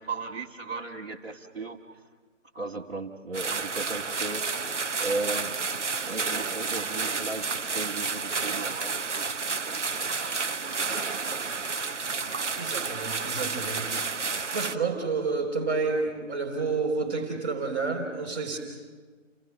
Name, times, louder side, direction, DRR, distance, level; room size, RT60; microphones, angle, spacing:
voice 1, 0.0-1.8 2.5-5.6 6.0-9.3 9.6-11.1, right 3 dB, 50° right, -3 dB, 1.9 m, -37 dB
sound 1, 3.3-14.8, right 4 dB, 65° right, 0.9 m, -31 dB
voice 2, 12.6-13.9 14.2-18.6, right 4 dB, 20° right, -6 dB, 3.3 m, -30 dB
29.5 x 29.5 x 6.2 m, 1.4 s
figure-of-eight pair, 160°, 38 cm